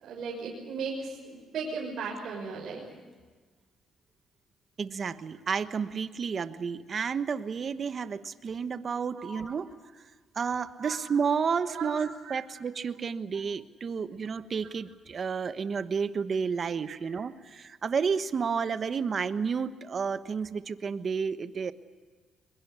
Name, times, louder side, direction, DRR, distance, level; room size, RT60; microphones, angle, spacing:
voice 1, 0.0-2.8 9.2-9.4 10.7-11.0 11.7-11.9 12.3-12.4 16.9-17.0, right 4 dB, 65° right, -3 dB, 6.2 m, -36 dB
voice 2, 4.8-9.7 10.3-21.7, right 6 dB, 45° right, 11 dB, 1.2 m, -31 dB
23.0 x 22.0 x 8.2 m, 1.4 s
cardioid pair, 90°, 0 cm